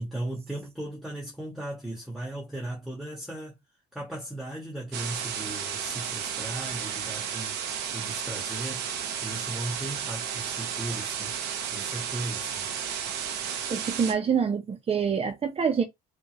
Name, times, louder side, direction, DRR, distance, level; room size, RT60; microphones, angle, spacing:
voice 1, 0.0-3.6 3.9-7.6 7.9-8.9 9.2-11.4 11.7-12.7, right 1 dB, ahead, 1.3 m, -37 dB
sound 1, 4.9-14.1, right 8 dB, 90° right, 1.0 m, -33 dB
voice 2, 13.7-15.8, right 6 dB, 35° right, 1.0 m, -26 dB
5.3 x 2.7 x 3.0 m
cardioid pair, 110°, 17 cm